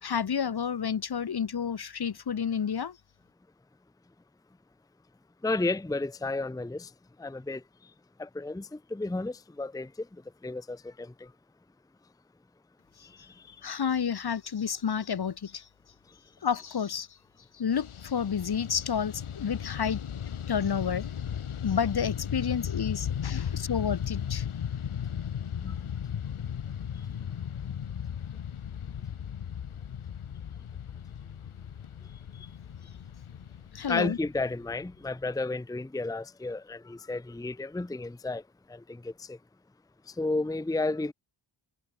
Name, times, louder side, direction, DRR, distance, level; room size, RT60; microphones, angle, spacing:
voice 1, 0.0-3.0 13.5-15.7 16.4-17.1 17.5-20.0 20.5-21.1 21.6-24.5 32.3-32.5 33.7-34.2, left 7 dB, 50° left, 1.2 m, -30 dB
voice 2, 5.4-6.9 7.2-7.6 8.2-10.1 10.4-11.3 13.0-13.3 25.6-25.8 33.9-38.4 38.7-39.4 40.1-41.1, left 2 dB, 10° left, 0.7 m, -32 dB
Fixed-wing aircraft airplane, 17.7-35.2, left 8 dB, 85° left, 1.8 m, -36 dB
wide cardioid pair, 140°, 48 cm